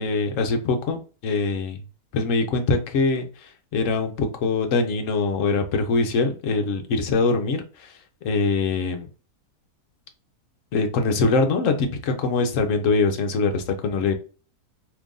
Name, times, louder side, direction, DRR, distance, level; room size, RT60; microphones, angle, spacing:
voice 1, 0.0-1.8 2.1-9.1 10.7-14.1, left 3 dB, 60° left, 1.0 m, -23 dB
3.0 x 2.5 x 3.6 m
omnidirectional pair, 1.6 m